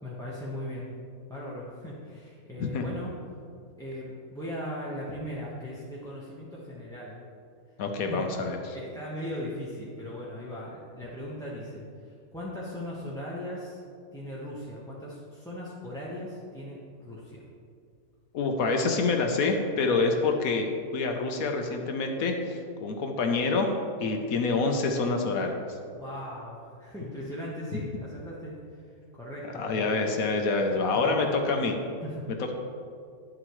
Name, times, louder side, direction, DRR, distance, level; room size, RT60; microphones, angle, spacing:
voice 1, 0.0-0.9 1.3-3.1 3.8-7.2 8.1-8.3 8.7-13.8 14.1-17.4 25.9-28.8 29.1-30.1 30.9-31.4 32.0-32.4, equal, 5° left, -7 dB, 1.0 m, -38 dB
voice 2, 7.8-8.7 18.3-23.7 24.0-25.6 27.7-27.8 29.5-31.7, left 3 dB, 80° left, 4 dB, 1.3 m, -27 dB
11.0 x 7.7 x 3.1 m, 2.3 s
omnidirectional pair, 1.5 m